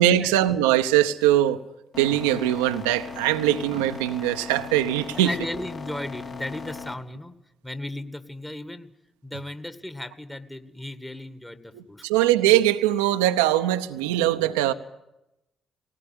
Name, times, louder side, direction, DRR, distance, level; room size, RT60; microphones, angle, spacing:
voice 1, 0.0-1.6 2.0-5.3 11.7-14.7, right 13 dB, 75° right, 8 dB, 0.8 m, -21 dB
sound 1, 1.9-6.9, left 4 dB, 50° left, 3.2 m, -38 dB
voice 2, 5.1-7.3 7.6-8.9 9.2-12.1, left 1 dB, 10° left, 10 dB, 2.0 m, -35 dB
19.5 x 18.5 x 9.5 m, 0.89 s
figure-of-eight pair, 45°, 0 cm